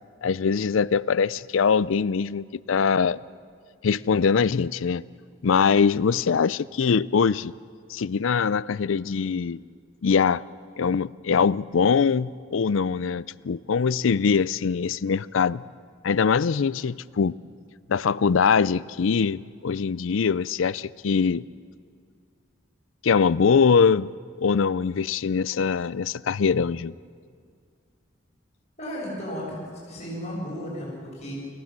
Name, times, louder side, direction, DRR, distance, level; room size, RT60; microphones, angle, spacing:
voice 1, 0.2-3.2 3.8-5.0 5.4-7.5 7.9-9.6 10.0-10.4 10.8-15.6 16.0-17.3 17.9-21.4 23.0-24.1 24.4-26.9, left 6 dB, 75° left, 19 dB, 0.5 m, -22 dB
voice 2, 28.8-31.3, equal, 35° left, -5 dB, 6.6 m, -34 dB
29.0 x 15.5 x 7.5 m, 2.1 s
head